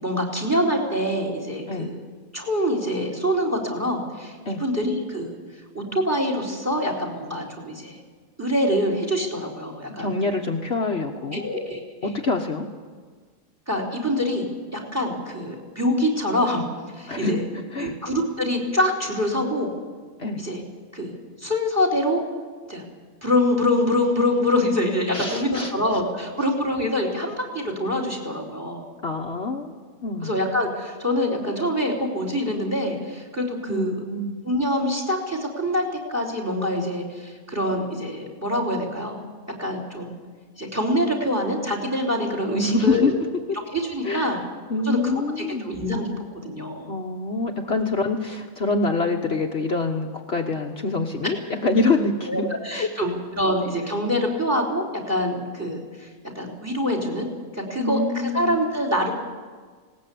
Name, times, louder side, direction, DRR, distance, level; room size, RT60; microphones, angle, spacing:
voice 1, 0.0-2.0 2.3-5.4 5.7-8.0 8.4-10.1 11.3-12.1 13.7-16.7 16.9-17.5 17.8-19.7 20.4-20.6 20.9-22.2 22.7-22.8 23.2-28.9 30.2-34.1 34.4-35.8 36.1-39.2 39.6-40.1 40.6-43.1 43.7-44.4 44.9-46.1 46.4-46.9 52.3-56.1 56.4-57.3 57.5-59.1, left 1 dB, 10° right, 1 dB, 3.8 m, -25 dB
voice 2, 10.0-11.4 12.0-12.7 17.1-17.3 17.7-17.9 20.2-20.4 25.1-25.7 29.0-29.7 30.0-30.3 33.7-34.3 42.5-43.1 44.0-44.4 44.7-45.7 46.9-52.9 57.8-58.6, left 3 dB, 50° left, 2 dB, 1.4 m, -25 dB
19.5 x 18.5 x 8.5 m, 1.5 s
omnidirectional pair, 1.5 m